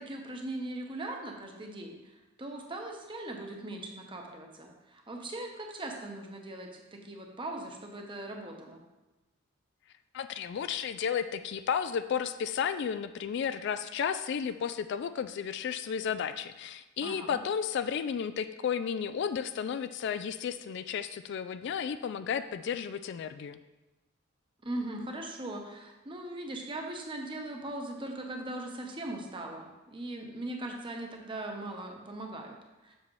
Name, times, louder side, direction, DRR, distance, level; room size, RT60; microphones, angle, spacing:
voice 1, 0.0-8.8 17.0-17.4 24.6-32.6 32.8-32.9, right 1 dB, 25° right, 2 dB, 0.9 m, -40 dB
voice 2, 10.1-23.6, left 7 dB, 55° left, 11 dB, 0.3 m, -33 dB
7.4 x 6.8 x 3.2 m, 1.1 s
head